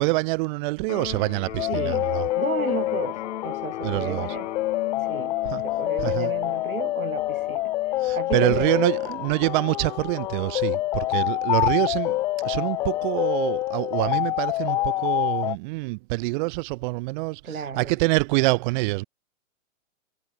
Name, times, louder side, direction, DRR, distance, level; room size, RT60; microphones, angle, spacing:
voice 1, 0.0-2.3 3.8-4.3 5.4-5.6 6.0-6.3 8.0-19.0, right 25 dB, 35° right, 1.5 m, -26 dB
Electric guitar, 0.8-8.8, left 11 dB, 60° left, 5.8 m, -39 dB
sound 1, 1.6-15.5, left 17 dB, 10° left, 0.4 m, -27 dB
voice 2, 1.7-2.0 2.3-4.5 5.1-5.4 5.6-7.7 8.1-9.2 17.4-18.0, right 6 dB, 85° right, 7.1 m, -33 dB
hypercardioid pair, 135°, 41 cm